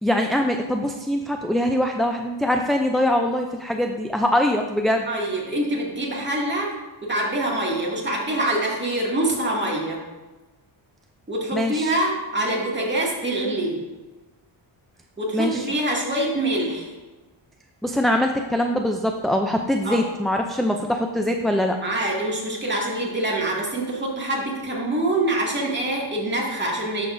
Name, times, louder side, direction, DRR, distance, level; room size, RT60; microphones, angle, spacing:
voice 1, 0.0-5.1 11.5-11.9 15.3-15.7 17.8-21.8, left 1 dB, ahead, 3 dB, 0.3 m, -23 dB
voice 2, 5.1-6.7 7.0-10.0 11.3-13.8 15.2-16.9 19.8-20.0 21.8-27.1, right 1 dB, 20° right, -4 dB, 2.2 m, -25 dB
11.0 x 6.9 x 2.6 m, 1.2 s
cardioid pair, 110°, 47 cm